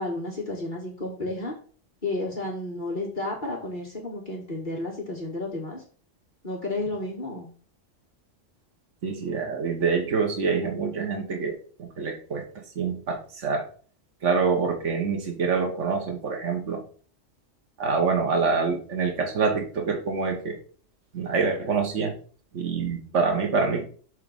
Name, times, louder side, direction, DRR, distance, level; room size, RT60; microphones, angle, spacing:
voice 1, 0.0-1.5 2.0-5.8 6.4-7.5, left 2 dB, 40° left, -2 dB, 1.7 m, -32 dB
voice 2, 9.0-12.4 12.7-13.7 14.2-16.8 17.8-20.6 21.1-22.2 22.5-23.8, right 5 dB, 70° right, 2 dB, 1.6 m, -26 dB
6.6 x 3.8 x 5.3 m, 0.42 s
omnidirectional pair, 1.3 m